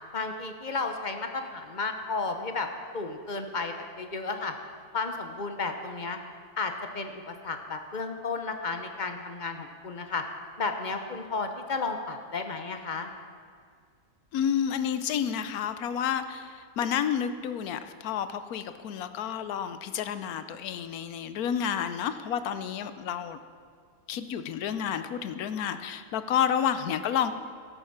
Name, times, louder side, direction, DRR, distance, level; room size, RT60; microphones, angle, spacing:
voice 1, 0.1-2.7 2.9-4.5 4.9-6.2 6.6-10.2 10.6-13.1, left 4 dB, 35° left, 6 dB, 0.9 m, -33 dB
voice 2, 14.3-23.4 24.1-27.3, left 8 dB, 70° left, 11 dB, 1.2 m, -30 dB
17.0 x 8.2 x 5.9 m, 2.1 s
omnidirectional pair, 1.7 m